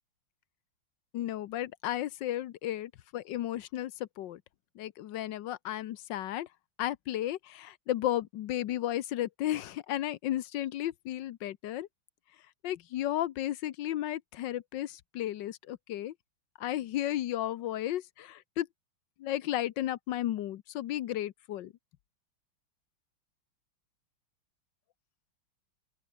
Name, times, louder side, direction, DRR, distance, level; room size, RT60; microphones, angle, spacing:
voice 1, 1.1-4.4 4.8-6.5 6.8-11.9 12.6-16.1 16.6-18.7 19.2-21.7, left 13 dB, 70° left, 1.3 m, -34 dB
open air
omnidirectional pair, 2.3 m